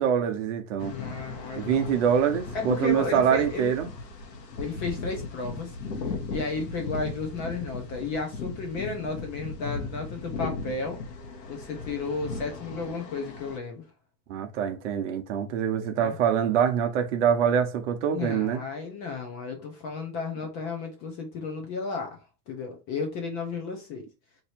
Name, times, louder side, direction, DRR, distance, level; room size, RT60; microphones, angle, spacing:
voice 1, 0.0-1.0 1.6-3.9 14.3-18.6, right 8 dB, 45° right, 0.8 m, -25 dB
sound 1, 0.8-13.6, left 3 dB, 80° left, 1.3 m, -37 dB
voice 2, 0.8-2.0 2.5-3.9 4.6-11.0 11.5-13.9 16.0-16.2 18.1-24.0, left 4 dB, 20° left, 0.5 m, -33 dB
3.2 x 2.6 x 4.3 m
hypercardioid pair, 135°, 49 cm